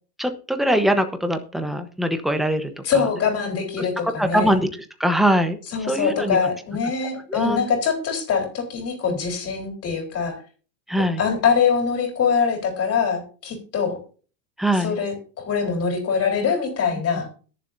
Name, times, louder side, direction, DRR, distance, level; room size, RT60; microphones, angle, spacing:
voice 1, 0.2-3.1 3.8-3.9 4.2-6.4 7.3-7.6 9.1-9.2 10.9-11.2 14.6-15.0, equal, ahead, 7 dB, 1.0 m, -22 dB
voice 2, 2.8-4.6 5.7-10.4 11.2-14.0 14.8-17.3, left 6 dB, 30° left, 4 dB, 4.0 m, -23 dB
21.5 x 7.2 x 2.7 m, 0.38 s
supercardioid pair, 135°, 49 cm